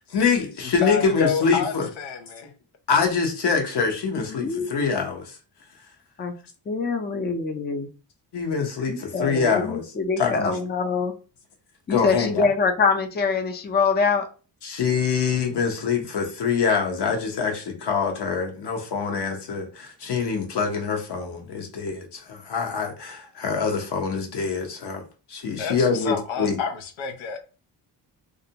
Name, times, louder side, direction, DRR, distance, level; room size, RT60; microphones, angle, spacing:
voice 1, 0.1-1.9 2.9-5.4 8.3-9.8 10.2-10.6 11.9-12.5 14.6-25.0 25.3-26.6, left 5 dB, 60° left, 0.9 m, -25 dB
voice 2, 0.6-2.5 25.6-27.4, left 5 dB, 85° left, 0.6 m, -29 dB
voice 3, 4.3-4.7 6.2-6.3 6.7-7.9 8.9-11.1 11.9-14.3, left 4 dB, 25° left, 0.4 m, -24 dB
2.5 x 2.1 x 2.7 m
cardioid pair, 65°, 46 cm